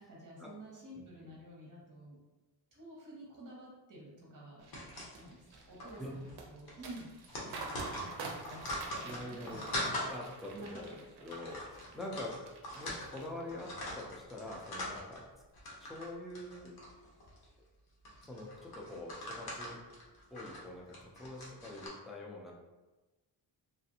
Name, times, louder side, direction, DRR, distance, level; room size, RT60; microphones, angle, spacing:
voice 1, 0.0-2.2 2.7-9.8 10.5-11.3, right 1 dB, 45° right, -4 dB, 1.1 m, -51 dB
voice 2, 0.9-1.3 6.0-6.1 9.0-10.9 11.2-12.4 12.7-15.3 15.8-16.8 18.2-19.8 20.3-22.5, left 1 dB, ahead, -2 dB, 0.3 m, -45 dB
sound 1, 4.6-12.9 13.2-13.8 14.2-14.5, right 3 dB, 60° right, 0.6 m, -48 dB
sound 2, 4.7-5.5 5.8-6.0 6.2-6.4 6.7-10.1 10.7-10.9 11.3-13.2 13.5-15.2 15.5-16.1 16.3-17.5 18.0-21.9, left 1 dB, 55° left, 0.9 m, -42 dB
3.2 x 2.5 x 2.7 m, 1.1 s
wide cardioid pair, 135°, 44 cm